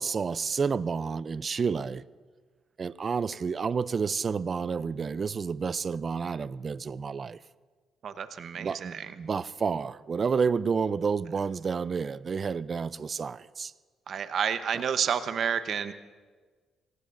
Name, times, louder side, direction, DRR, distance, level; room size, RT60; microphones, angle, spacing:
voice 1, 0.0-2.0 2.8-7.4 8.6-13.7, right 5 dB, 40° right, 0.4 m, -30 dB
voice 2, 8.0-9.3 14.1-15.9, right 7 dB, 60° right, 0.8 m, -30 dB
24.0 x 17.5 x 2.6 m
cardioid pair, 90°, 0 cm